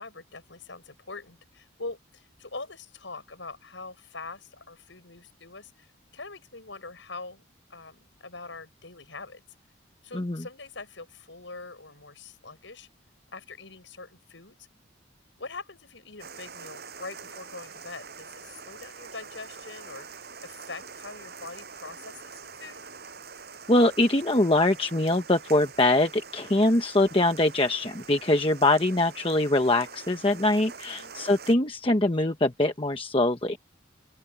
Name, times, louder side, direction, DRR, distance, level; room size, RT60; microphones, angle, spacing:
voice 1, 0.0-7.4 7.7-9.4 10.0-12.9 13.3-14.7 15.4-22.8 30.9-31.2, left 3 dB, 70° left, 6.6 m, -43 dB
voice 2, 10.1-10.4 23.7-33.6, left 2 dB, 25° left, 1.1 m, -23 dB
sound 1, 16.2-31.5, right 5 dB, 55° right, 7.2 m, -45 dB
open air
head